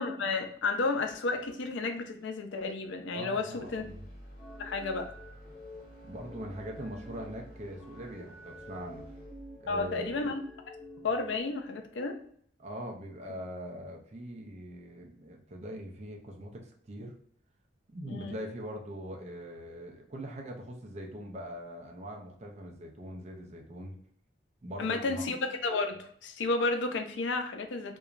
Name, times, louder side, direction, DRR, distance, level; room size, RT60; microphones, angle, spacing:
voice 1, 0.0-3.8 4.6-5.1 9.7-10.4 11.0-12.2 18.1-18.4 24.8-28.0, left 3 dB, 85° left, 5 dB, 0.4 m, -32 dB
voice 2, 3.1-4.0 6.0-9.1 9.6-10.3 12.6-17.1 17.9-24.0 24.6-25.2, equal, 35° right, 1 dB, 0.4 m, -42 dB
sound 1, 3.5-11.6, equal, 45° left, 0.9 m, -52 dB
sound 2, 4.4-11.4, equal, ahead, 0.7 m, -49 dB
2.8 x 2.2 x 2.4 m, 0.63 s
head